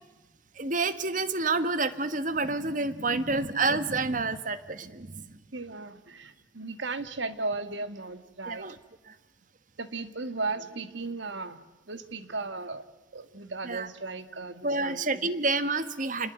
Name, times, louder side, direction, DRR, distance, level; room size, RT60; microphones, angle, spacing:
voice 1, 0.5-5.4 8.5-8.8 9.1-9.2 13.6-13.9 14.6-16.3, right 3 dB, 40° right, 12 dB, 1.4 m, -29 dB
voice 2, 5.5-8.7 9.8-11.6 11.9-12.8 13.1-15.3, right 3 dB, 70° right, 11 dB, 1.9 m, -36 dB
29.0 x 20.5 x 9.3 m, 1.1 s
head